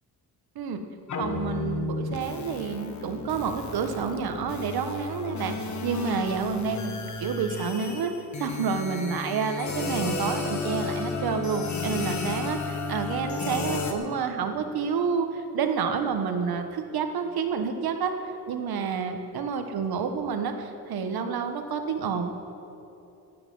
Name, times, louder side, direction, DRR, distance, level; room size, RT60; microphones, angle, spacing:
sound 1, 1.1-13.9, left 4 dB, 50° left, 1.2 m, -33 dB
voice 1, 1.2-5.6 5.8-8.1 8.4-18.1 18.5-22.4, right 6 dB, 70° right, 7 dB, 1.2 m, -29 dB
15.5 x 10.0 x 5.4 m, 2.9 s
cardioid pair, 125°, 38 cm